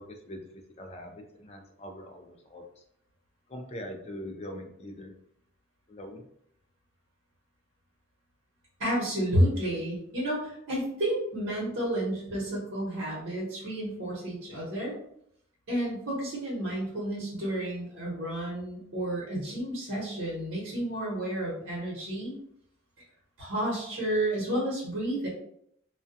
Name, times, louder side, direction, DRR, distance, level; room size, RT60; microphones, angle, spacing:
voice 1, 0.0-2.8 3.5-5.2 5.9-6.3, left 1 dB, 30° left, 3 dB, 0.3 m, -42 dB
voice 2, 8.8-15.0 15.7-22.3 23.4-25.3, right 1 dB, 90° right, -5 dB, 1.0 m, -31 dB
2.2 x 2.2 x 2.6 m, 0.70 s
head